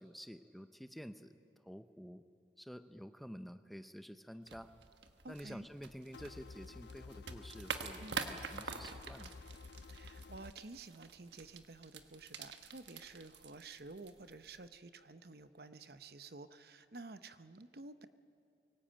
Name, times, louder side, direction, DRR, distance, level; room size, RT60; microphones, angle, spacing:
voice 1, 0.0-1.3 1.6-2.2 2.6-4.7 5.3-9.4, equal, ahead, 10 dB, 0.6 m, -50 dB
sound 1, 4.4-14.7, right 5 dB, 90° right, 1.3 m, -47 dB
voice 2, 5.2-5.7 8.0-8.3 9.9-18.1, right 3 dB, 60° right, 12 dB, 0.8 m, -52 dB
sound 2, 6.1-10.5, left 4 dB, 80° left, 0.5 m, -52 dB
23.5 x 18.0 x 8.8 m, 2.5 s
head